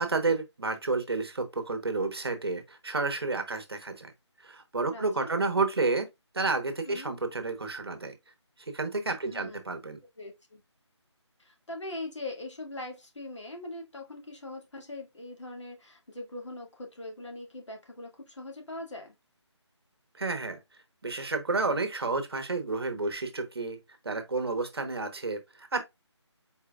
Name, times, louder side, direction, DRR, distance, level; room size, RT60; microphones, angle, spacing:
voice 1, 0.0-4.1 4.4-6.1 6.3-8.1 8.7-10.0 20.1-20.6 21.0-23.8 24.0-25.8, right 3 dB, 55° right, 1.1 m, -30 dB
voice 2, 4.9-5.3 6.8-7.1 9.2-9.6 10.2-10.6 11.4-19.1, left 2 dB, 75° left, 2.1 m, -41 dB
4.6 x 4.4 x 2.3 m
figure-of-eight pair, 180°, 15 cm